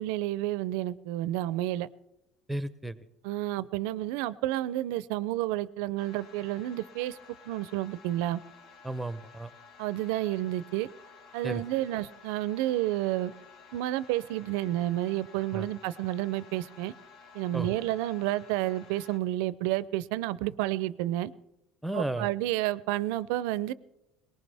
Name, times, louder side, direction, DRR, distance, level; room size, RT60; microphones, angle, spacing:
voice 1, 0.0-1.9 3.2-7.2 7.5-8.4 9.8-10.9 11.3-13.3 13.7-16.9 17.3-21.3 21.9-23.7, right 15 dB, 80° right, 19 dB, 0.5 m, -30 dB
voice 2, 2.5-3.0 8.8-9.5 11.4-11.6 15.5-15.7 17.5-17.7 21.8-22.3, right 1 dB, 5° right, 14 dB, 0.7 m, -33 dB
sound 1, 6.0-19.2, left 5 dB, 70° left, 1.7 m, -53 dB
19.5 x 18.5 x 3.4 m, 0.91 s
supercardioid pair, 110°, 0 cm